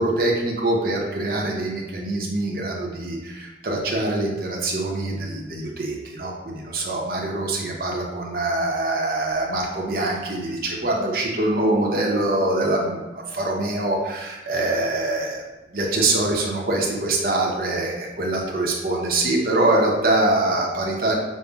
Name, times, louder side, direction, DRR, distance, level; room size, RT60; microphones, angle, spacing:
voice 1, 0.0-15.4 15.7-21.1, right 2 dB, 55° right, -1 dB, 0.7 m, -24 dB
5.3 x 2.1 x 3.5 m, 1.1 s
head